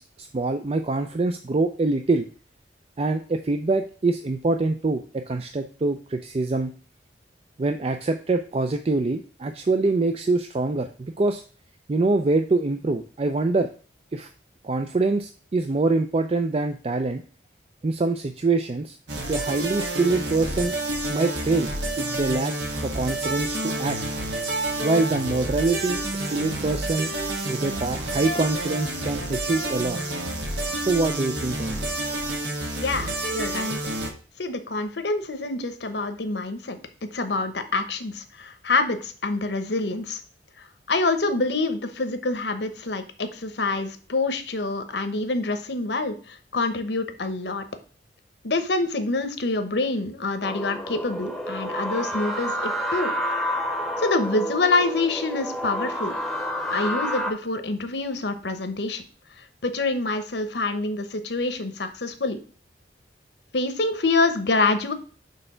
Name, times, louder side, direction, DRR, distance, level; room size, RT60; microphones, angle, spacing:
voice 1, 0.0-2.2 3.0-6.7 7.6-11.4 11.9-13.7 14.1-14.3 14.6-17.2 17.8-19.0 19.3-20.7 21.1-21.7 22.0-22.5 22.8-24.0 24.8-27.1 27.5-30.0 30.8-31.9, right 3 dB, 35° right, 7 dB, 0.4 m, -24 dB
sound 1, 19.1-34.1, right 2 dB, 75° right, 1.4 m, -29 dB
voice 2, 32.8-33.8 34.4-36.8 37.1-40.2 40.6-47.6 48.4-53.1 54.0-56.1 56.7-59.0 59.4-62.4 63.5-64.9, left 3 dB, 65° left, 9 dB, 0.9 m, -26 dB
sound 2, 50.4-57.3, equal, ahead, 0.9 m, -29 dB
6.6 x 3.3 x 5.6 m, 0.40 s
head